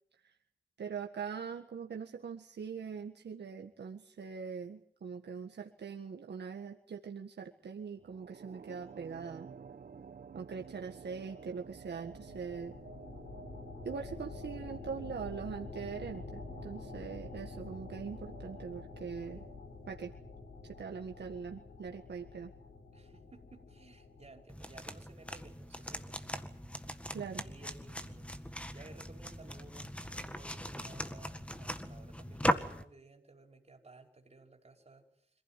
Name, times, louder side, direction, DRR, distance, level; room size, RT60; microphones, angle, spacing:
voice 1, 0.8-9.5 10.3-12.7 13.8-19.4 19.9-20.1 20.8-22.5 27.1-27.4, right 6 dB, 70° right, 2 dB, 1.7 m, -42 dB
sound 1, 8.0-20.5, right 6 dB, 55° right, 1.1 m, -52 dB
voice 2, 10.6-10.9 22.9-26.3 27.4-35.4, right 3 dB, 35° right, 3 dB, 5.3 m, -57 dB
sound 2, 11.7-24.4, left 4 dB, 70° left, 4.8 m, -48 dB
sound 3, 24.5-32.8, equal, 5° left, 1.8 m, -39 dB
26.5 x 16.0 x 9.3 m, 0.65 s
wide cardioid pair, 110°, 18 cm